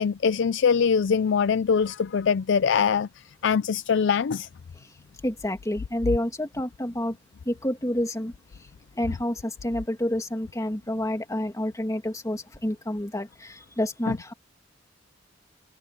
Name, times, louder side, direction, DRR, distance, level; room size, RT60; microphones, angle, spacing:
voice 1, 0.0-4.5 14.1-14.2, left 6 dB, 65° left, 0.4 m, -23 dB
voice 2, 5.2-7.2 7.5-8.3 9.0-14.3, left 1 dB, 15° left, 2.2 m, -29 dB
head